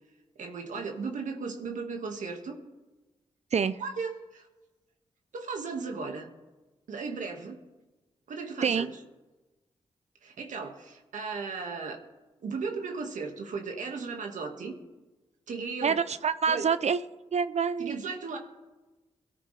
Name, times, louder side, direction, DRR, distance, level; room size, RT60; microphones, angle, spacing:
voice 1, 0.4-2.6 3.8-4.5 5.3-6.3 6.9-7.6 8.3-9.0 10.2-12.0 12.4-14.7 15.5-16.0 16.5-16.7 17.8-18.4, right 4 dB, 80° right, 2 dB, 1.9 m, -36 dB
voice 2, 15.8-17.0 17.3-18.0, right 6 dB, 60° right, 14 dB, 0.6 m, -26 dB
22.0 x 13.5 x 3.4 m, 1.2 s
supercardioid pair, 45°, 13 cm